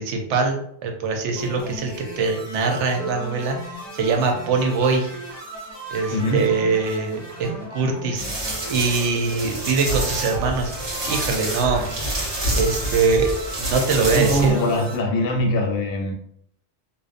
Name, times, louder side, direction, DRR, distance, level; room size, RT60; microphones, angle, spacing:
voice 1, 0.0-3.6 4.0-5.1 5.9-8.3 8.7-10.7 11.1-11.8 12.5-13.3 13.6-14.6, right 4 dB, 85° right, 2 dB, 0.9 m, -22 dB
sound 1, 1.4-15.0, right 1 dB, 40° right, 0.3 m, -37 dB
Harp, 3.0-8.8 9.8-9.9, right 3 dB, 30° left, 0.8 m, -44 dB
voice 2, 6.1-6.5 14.0-16.1, equal, 65° left, 1 dB, 0.7 m, -22 dB
sound 2, 8.2-14.5, right 1 dB, 55° right, 1.1 m, -28 dB
2.5 x 2.0 x 2.4 m, 0.71 s
omnidirectional pair, 1.2 m